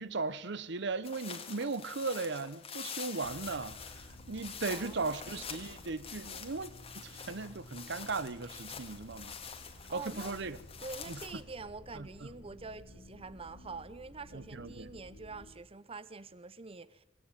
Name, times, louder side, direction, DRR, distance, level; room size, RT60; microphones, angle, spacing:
voice 1, 0.0-9.3 9.9-10.6 11.1-11.2 11.9-12.3 14.3-14.9, right 3 dB, 65° right, 0.9 m, -37 dB
sound 1, 1.0-11.4, left 6 dB, 30° left, 2.4 m, -46 dB
sound 2, 3.2-15.5, left 1 dB, 75° left, 4.7 m, -54 dB
voice 2, 4.3-5.4 9.9-10.4 10.8-17.0, right 4 dB, 30° right, 0.9 m, -46 dB
25.5 x 19.0 x 9.0 m
head